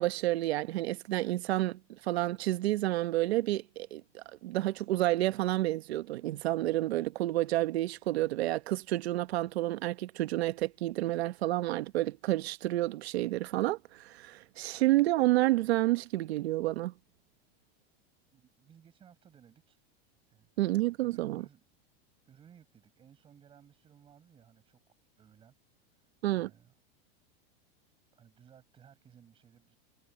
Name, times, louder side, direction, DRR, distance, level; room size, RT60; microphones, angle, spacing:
voice 1, 0.0-16.9 20.6-21.4 26.2-26.5, right 16 dB, 90° right, 1.1 m, -30 dB
voice 2, 18.3-19.8 20.3-20.5 21.0-21.6 22.2-24.8 25.2-25.6 25.9-26.7 28.1-29.8, right 8 dB, 15° right, 4.9 m, -60 dB
supercardioid pair, 175°, 31 cm